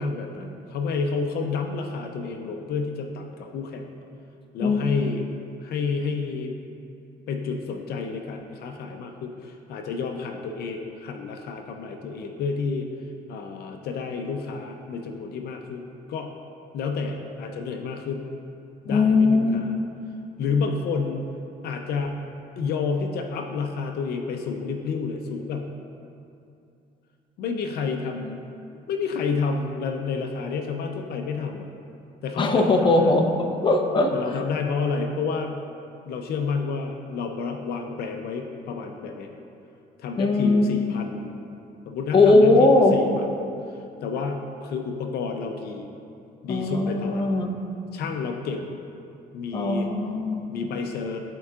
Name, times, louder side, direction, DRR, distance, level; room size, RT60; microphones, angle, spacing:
voice 1, 0.0-3.9 4.5-5.2 5.6-6.6 7.3-12.9 13.3-16.3 16.7-18.3 18.8-19.7 20.4-21.2 21.6-22.2 22.6-25.7 27.4-28.4 28.9-31.7 32.2-33.2 34.1-35.6 36.1-39.3 40.0-41.3 41.9-43.3 43.7-45.9 46.4-47.3 47.9-48.7 49.3-49.9 50.5-51.2, left 4 dB, 70° left, 4 dB, 0.6 m, -30 dB
voice 2, 18.9-19.6 32.4-33.3 33.6-34.1 40.2-40.9 42.1-43.0 46.5-47.5 49.5-50.5, left 2 dB, 30° left, 2 dB, 0.7 m, -19 dB
13.5 x 4.6 x 2.4 m, 2.6 s
cardioid pair, 110°, 17 cm